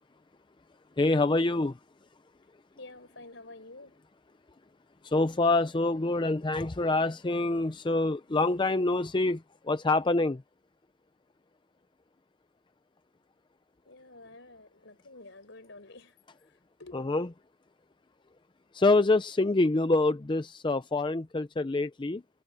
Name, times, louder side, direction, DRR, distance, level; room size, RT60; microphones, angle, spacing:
voice 1, 1.0-1.7 5.0-9.4 9.7-10.4 16.9-17.3 18.7-22.2, left 2 dB, 25° left, 0.5 m, -26 dB
voice 2, 2.8-4.0 13.9-16.1 16.8-17.0, left 2 dB, 65° left, 5.1 m, -49 dB
head